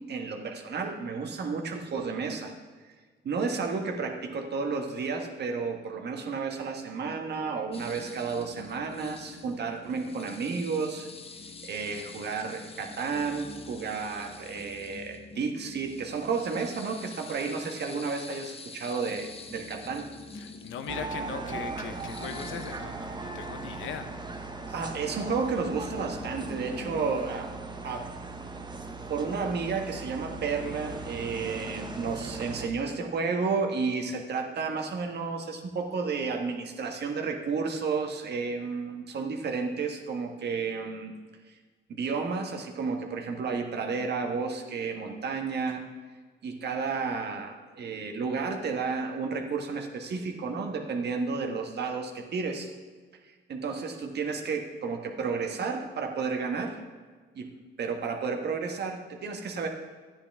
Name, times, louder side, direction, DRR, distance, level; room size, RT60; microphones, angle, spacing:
voice 1, 0.1-2.5 3.2-11.1 11.6-20.1 24.7-27.5 27.8-28.1 29.1-41.1 41.9-45.8 46.4-52.7 53.5-56.8 57.3-57.5 57.8-59.7, right 5 dB, 55° right, 3 dB, 1.5 m, -32 dB
sound 1, 7.7-27.2, left 4 dB, 30° left, 0.7 m, -46 dB
voice 2, 20.3-24.1, left 7 dB, 80° left, 8 dB, 0.9 m, -39 dB
sound 2, 20.9-32.7, right 3 dB, 20° right, 0.9 m, -39 dB
12.0 x 9.7 x 3.6 m, 1.5 s
cardioid pair, 90°, 20 cm